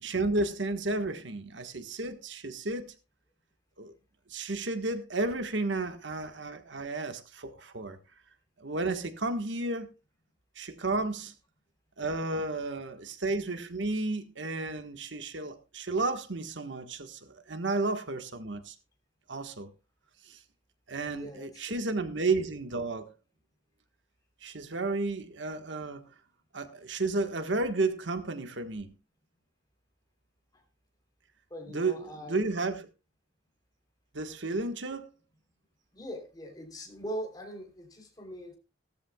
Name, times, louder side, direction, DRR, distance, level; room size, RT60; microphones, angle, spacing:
voice 1, 0.0-2.9 3.8-3.9 4.3-8.0 8.6-9.9 10.6-11.3 12.0-18.7 19.3-19.7 20.3-20.4 20.9-23.1 24.4-26.1 26.5-28.9 31.7-32.9 34.1-35.1, right 3 dB, 85° right, 1.4 m, -32 dB
voice 2, 21.0-22.1 30.5-30.6 31.5-32.5 35.9-38.6, right 1 dB, 20° left, 3.3 m, -42 dB
17.0 x 13.5 x 2.3 m
head